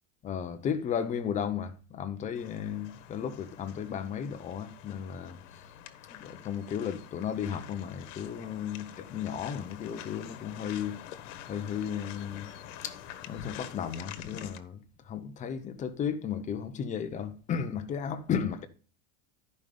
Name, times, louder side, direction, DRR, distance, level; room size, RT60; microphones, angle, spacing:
voice 1, 0.2-5.6 6.1-11.0 11.5-12.5 12.8-13.0 13.3-18.7, left 8 dB, 20° left, 0.7 m, -34 dB
sound 1, 2.3-14.6, left 10 dB, 70° left, 1.3 m, -46 dB
12.0 x 5.4 x 5.1 m
supercardioid pair, 160°, 39 cm